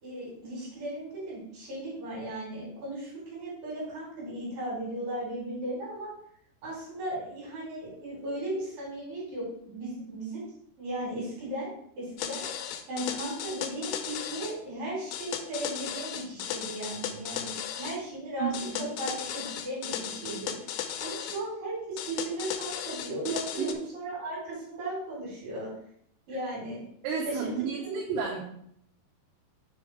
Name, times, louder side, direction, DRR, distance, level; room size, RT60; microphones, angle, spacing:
voice 1, 0.0-6.1 6.6-10.5 10.8-11.7 12.0-12.4 12.9-18.5 18.8-25.7 26.3-26.8 27.3-27.5, right 1 dB, 60° right, -7 dB, 4.6 m, -36 dB
sound 1, 12.2-14.6 15.1-18.0 18.5-21.4 22.0-23.7, left 9 dB, 85° left, 2.8 m, -36 dB
voice 2, 18.4-18.9 23.2-23.8 27.0-28.4, right 6 dB, 90° right, -3 dB, 3.3 m, -32 dB
7.0 x 4.8 x 4.5 m, 0.69 s
omnidirectional pair, 4.8 m